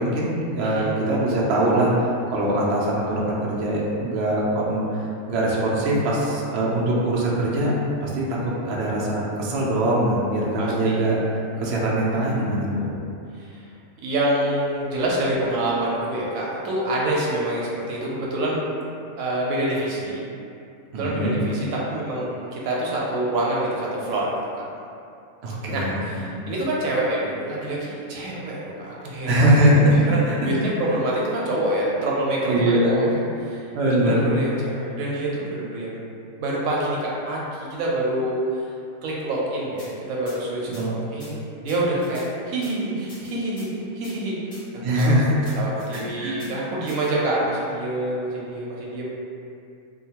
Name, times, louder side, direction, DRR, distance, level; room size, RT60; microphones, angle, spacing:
voice 1, 0.0-4.9 5.3-7.7 8.0-11.2 11.6-12.9 20.9-21.4 25.4-26.3 29.2-29.9 30.3-30.4 32.5-33.2 33.7-34.4 40.7-40.9 44.8-45.5 45.9-46.5, right 1 dB, 65° right, -5 dB, 0.7 m, -22 dB
voice 2, 10.6-11.0 13.4-13.6 14.0-18.7 19.2-20.2 20.9-24.4 25.7-29.5 29.9-33.6 33.8-36.0 36.4-38.4 39.0-43.7 43.9-44.4 45.0-49.1, right 1 dB, 90° right, -5 dB, 1.0 m, -26 dB
sound 1, 39.8-39.9 40.3-40.4 40.7-40.8 41.2-41.3 41.7-42.3 42.6-42.7 43.1-43.7 44.0-44.1 44.5-44.6 45.0-45.1 45.4-46.0 46.4-46.5 46.9-47.1, left 1 dB, 40° left, 0.7 m, -45 dB
2.8 x 2.2 x 2.8 m, 2.5 s
omnidirectional pair, 1.4 m